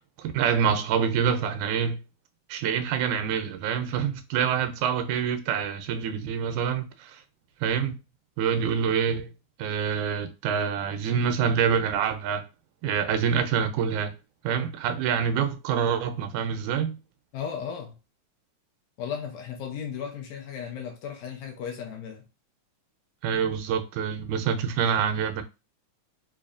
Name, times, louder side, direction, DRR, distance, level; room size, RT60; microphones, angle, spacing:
voice 1, 0.2-2.0 2.5-7.2 7.6-8.0 8.4-9.3 9.6-12.4 12.8-14.1 14.4-17.0 23.2-25.4, right 7 dB, 85° right, 2.0 m, -26 dB
voice 2, 17.3-18.0 19.0-22.3, left 7 dB, 75° left, 1.9 m, -35 dB
4.6 x 2.6 x 2.5 m
omnidirectional pair, 3.4 m